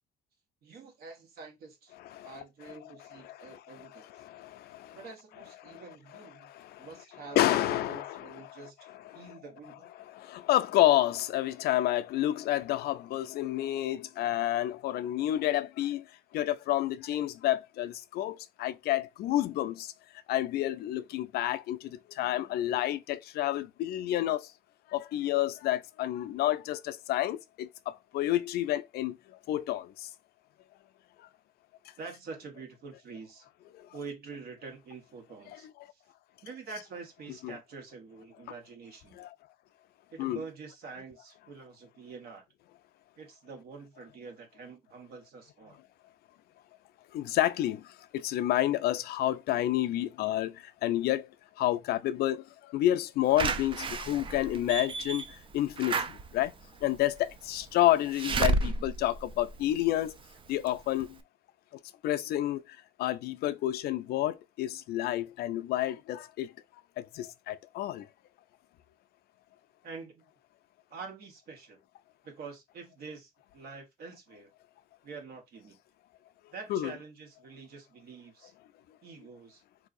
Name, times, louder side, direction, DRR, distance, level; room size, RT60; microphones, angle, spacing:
voice 1, 0.6-2.0 2.2-4.1 4.9-6.5 6.8-9.9 32.0-33.5 33.9-36.0 36.4-39.3 40.1-42.4 43.2-45.8 69.8-70.3 70.9-71.8 72.2-74.5 75.0-75.8 76.5-78.5 79.0-79.6, right 4 dB, 65° right, 1.3 m, -46 dB
voice 2, 2.0-2.4 3.1-5.0 5.6-5.8 6.4-6.9 7.4-8.6 9.1-9.2 10.1-16.1 16.3-19.9 20.3-24.5 24.9-29.2 29.5-30.1 33.7-33.9 37.4-37.5 39.2-39.3 40.2-40.4 47.1-51.3 51.6-56.5 56.8-60.2 60.5-61.2 62.0-66.5 67.0-68.1 76.7-76.9, left 14 dB, 70° left, 0.4 m, -30 dB
Slam / Alarm, 53.4-60.2 60.7-60.8 61.0-61.1, right 3 dB, 30° right, 0.4 m, -32 dB
3.8 x 2.7 x 2.5 m
cardioid pair, 110°, 17 cm